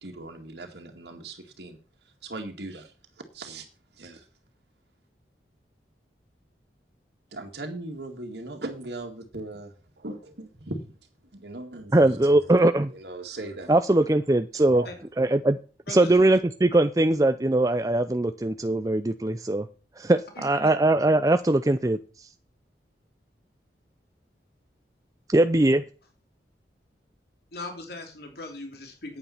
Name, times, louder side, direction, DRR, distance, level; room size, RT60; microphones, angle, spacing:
voice 1, 0.0-1.8 2.2-2.9 3.3-3.7 4.0-4.2 7.3-10.8 11.3-12.5 12.9-13.7 14.5-14.9, right 2 dB, 70° right, 2 dB, 2.0 m, -38 dB
voice 2, 11.9-12.9 13.7-14.8 15.2-15.6 15.9-19.7 20.0-22.0 25.3-25.8, right 2 dB, 20° right, 9 dB, 0.5 m, -21 dB
voice 3, 20.3-20.7 27.5-29.2, left 2 dB, 60° left, 4 dB, 3.1 m, -39 dB
9.4 x 9.0 x 5.7 m, 0.37 s
head